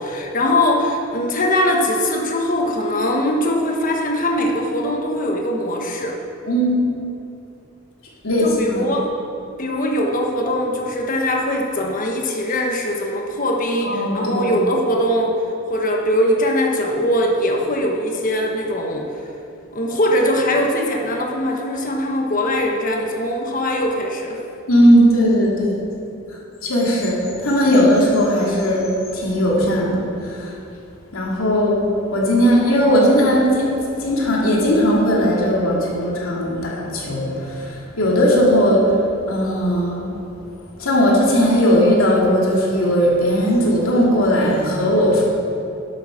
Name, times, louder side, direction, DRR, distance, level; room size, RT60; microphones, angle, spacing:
voice 1, 0.0-6.2 8.4-9.1 9.6-15.4 15.7-19.1 19.7-24.4, left 1 dB, 40° left, 1 dB, 1.3 m, -21 dB
voice 2, 6.4-6.8 8.2-8.8 13.8-14.6 24.7-25.8 26.6-30.6 31.1-31.8 32.1-33.7 34.0-39.0 39.3-40.1 40.8-45.3, equal, 85° left, -3 dB, 2.7 m, -17 dB
11.0 x 8.1 x 6.4 m, 2.8 s
head